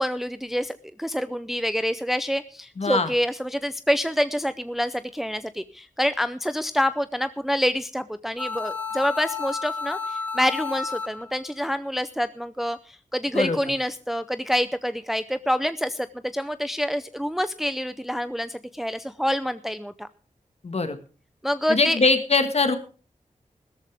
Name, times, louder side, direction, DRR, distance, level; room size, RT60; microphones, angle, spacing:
voice 1, 0.0-16.1 16.3-20.1 21.4-22.0, equal, ahead, 12 dB, 0.5 m, -27 dB
voice 2, 2.8-3.1 13.3-13.6 20.6-21.0 21.7-22.8, left 3 dB, 55° left, 8 dB, 1.7 m, -22 dB
sound 1, 8.4-11.4, left 5 dB, 15° left, 3.5 m, -31 dB
16.0 x 13.5 x 3.5 m, 0.37 s
wide cardioid pair, 105°, 13 cm